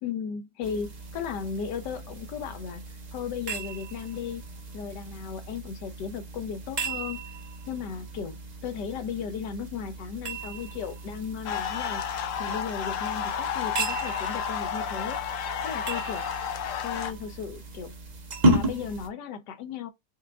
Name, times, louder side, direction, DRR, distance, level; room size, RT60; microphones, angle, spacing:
voice 1, 0.0-2.8 3.1-4.4 4.7-7.2 7.7-8.4 8.6-12.0 12.4-15.2 15.6-16.3 16.8-18.0 18.4-19.9, left 7 dB, 90° left, 1.3 m, -35 dB
sound 1, 0.6-19.1, right 1 dB, 40° right, 0.6 m, -34 dB
sound 2, 11.4-17.1, left 8 dB, 65° left, 0.8 m, -31 dB
4.8 x 2.3 x 3.5 m
omnidirectional pair, 1.8 m